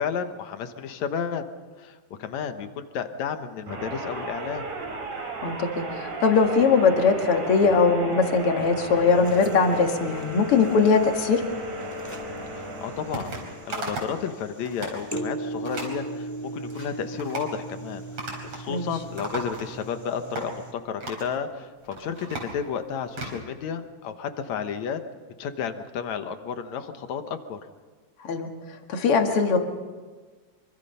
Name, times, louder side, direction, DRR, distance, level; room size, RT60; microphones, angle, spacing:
voice 1, 0.0-1.4 1.8-4.7 12.5-18.0 18.5-25.0 25.4-27.6, left 7 dB, 70° left, 8 dB, 2.4 m, -32 dB
sound 1, 3.7-14.0, right 1 dB, 65° right, 4.6 m, -35 dB
voice 2, 5.4-11.4 18.7-18.9 28.2-28.5 28.9-29.6, left 4 dB, 50° left, 4 dB, 2.6 m, -21 dB
sound 2, 9.1-20.7, right 2 dB, 5° left, 1.4 m, -39 dB
sound 3, 13.1-13.4 13.7-14.2 14.6-15.0 15.7-16.0 16.5-16.9 17.2-17.5 18.2-18.7 19.0-19.9 20.4-20.5 21.0-21.3 21.8-23.4, right 2 dB, 50° right, 5.6 m, -36 dB
25.5 x 24.5 x 5.6 m, 1.4 s
omnidirectional pair, 3.4 m